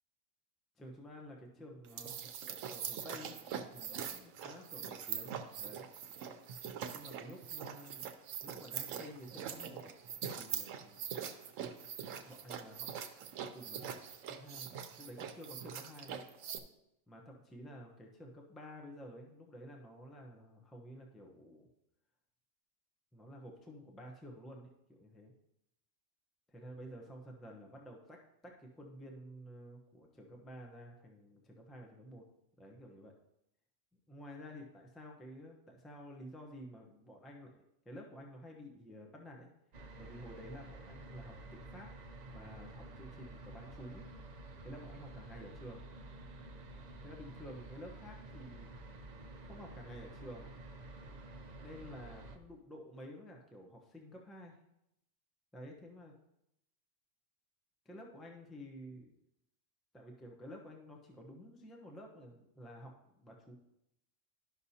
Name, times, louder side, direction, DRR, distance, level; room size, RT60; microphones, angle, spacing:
voice 1, 0.8-2.1 2.4-3.4 3.7-5.9 6.9-8.0 8.4-9.9 10.3-11.1 12.0-12.9 13.5-14.7 15.0-16.2 17.1-21.7 23.1-25.3 26.5-32.2 32.6-33.2 34.1-39.5 40.0-41.9 42.2-44.1 44.6-45.8 47.0-48.9 49.4-50.5 51.6-54.6 55.5-56.2 57.8-59.1 59.9-63.5, equal, ahead, 1 dB, 0.7 m, -51 dB
sound 1, 1.8-16.6, right 8 dB, 80° right, 1.0 m, -43 dB
sound 2, 39.7-52.4, right 2 dB, 45° right, 0.6 m, -50 dB
11.5 x 6.0 x 2.8 m, 0.83 s
omnidirectional pair, 1.3 m